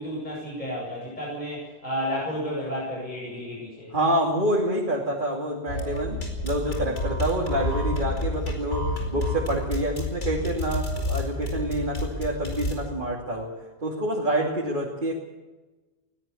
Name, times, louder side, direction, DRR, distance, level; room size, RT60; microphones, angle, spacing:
voice 1, 0.0-3.9, equal, 40° left, -5 dB, 8.3 m, -32 dB
voice 2, 3.9-13.5 13.8-15.1, right 1 dB, 45° right, -2 dB, 3.0 m, -27 dB
sound 1, 5.7-12.7, left 1 dB, 85° left, 5.0 m, -29 dB
20.5 x 18.0 x 7.2 m, 1.2 s
omnidirectional pair, 1.2 m